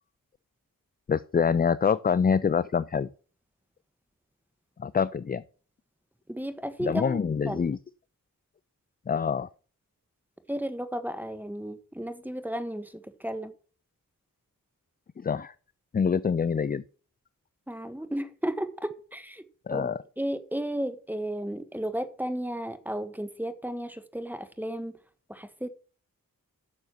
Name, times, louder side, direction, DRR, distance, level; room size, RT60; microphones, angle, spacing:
voice 1, 1.1-3.1 4.8-5.4 6.8-7.8 9.1-9.5 15.2-15.5 15.9-16.8 19.7-20.0, left 6 dB, 30° left, 0.4 m, -25 dB
voice 2, 6.3-7.6 10.5-13.5 17.7-19.4 19.7-19.9 20.2-25.0 25.3-25.7, right 1 dB, 5° right, 1.3 m, -34 dB
9.5 x 6.6 x 5.8 m
wide cardioid pair, 70°, 34 cm